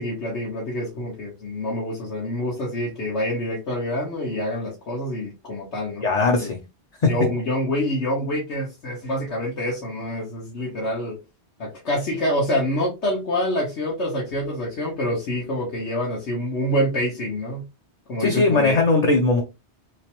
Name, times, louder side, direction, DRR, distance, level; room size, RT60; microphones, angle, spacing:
voice 1, 0.0-6.1 6.4-6.5 7.1-11.2 11.6-17.6 18.1-18.8, equal, 80° left, 1.5 m, -26 dB
voice 2, 6.0-6.6 7.0-7.1 18.2-19.4, left 3 dB, 45° left, 0.6 m, -19 dB
3.3 x 3.2 x 2.9 m
omnidirectional pair, 1.1 m